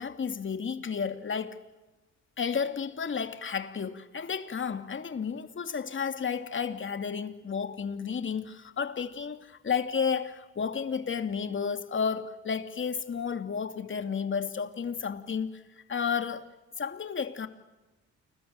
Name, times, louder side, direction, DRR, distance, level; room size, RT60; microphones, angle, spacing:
voice 1, 0.0-1.6 2.4-15.6 15.9-16.5 16.8-17.5, left 6 dB, 40° left, 2.8 m, -32 dB
29.0 x 21.5 x 8.9 m
cardioid pair, 90°, 30 cm